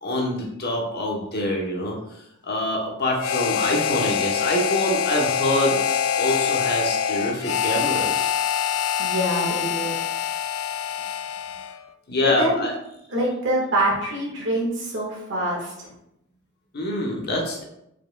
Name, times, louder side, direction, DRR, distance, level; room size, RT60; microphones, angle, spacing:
voice 1, 0.0-5.8 6.2-8.3 12.1-12.7 16.7-17.6, left 1 dB, 50° left, 0 dB, 1.0 m, -25 dB
Harmonica, 3.2-11.8, left 8 dB, 75° left, 0.3 m, -25 dB
voice 2, 9.0-10.0 12.2-12.6 13.1-15.9, equal, 60° right, -3 dB, 1.6 m, -25 dB
4.8 x 4.5 x 2.3 m, 0.81 s
head